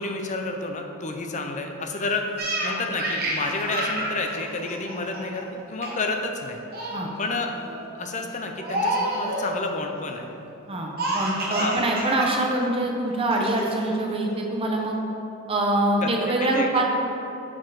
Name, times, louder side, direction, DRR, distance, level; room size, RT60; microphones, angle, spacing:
voice 1, 0.0-6.6 7.2-7.5 7.9-10.3 11.6-11.8 16.0-17.0, left 3 dB, 35° left, 4 dB, 0.6 m, -30 dB
Laughter, 2.4-5.4 5.8-6.1 6.4-7.0 7.5-7.8 8.6-9.6 11.0-12.3 12.6-12.7 13.3-13.8, right 1 dB, 50° right, 1.1 m, -29 dB
voice 2, 10.7-15.0 15.5-17.0, right 1 dB, 30° right, 0 dB, 0.6 m, -24 dB
6.3 x 4.4 x 4.7 m, 2.9 s
head